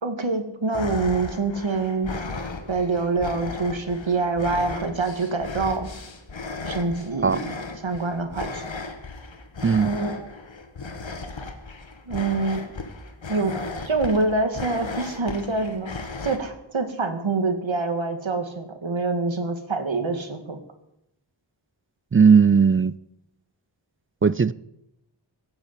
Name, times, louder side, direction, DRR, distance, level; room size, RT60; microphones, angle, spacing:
voice 1, 0.0-2.1 2.7-5.9 6.7-7.5 7.8-8.6 9.8-10.3 12.1-12.6 13.3-13.5 13.9-20.6, right 3 dB, 80° right, 7 dB, 2.0 m, -26 dB
sound 1, 0.7-16.4, left 3 dB, 75° left, 1.6 m, -35 dB
voice 2, 22.1-22.9 24.2-24.5, right 6 dB, 30° right, 19 dB, 0.4 m, -17 dB
16.0 x 7.0 x 8.3 m, 0.84 s
wide cardioid pair, 50°, 46 cm